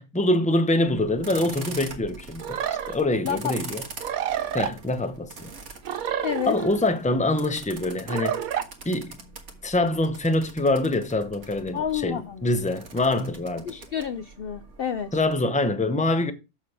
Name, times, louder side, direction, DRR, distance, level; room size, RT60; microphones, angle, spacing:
voice 1, 0.0-2.6 2.9-3.8 4.5-5.5 6.5-8.4 8.8-9.2 9.6-13.8 15.1-16.3, left 2 dB, 5° left, 0.6 m, -25 dB
sound 1, 0.9-15.3, right 4 dB, 55° right, 1.9 m, -43 dB
sound 2, 2.4-2.9 4.0-4.7 5.8-6.9 8.1-8.7, right 10 dB, 70° right, 1.2 m, -29 dB
voice 2, 3.2-3.6 6.2-6.6 11.7-12.5 13.6-15.1, left 8 dB, 75° left, 0.5 m, -29 dB
7.4 x 6.6 x 4.9 m
omnidirectional pair, 1.6 m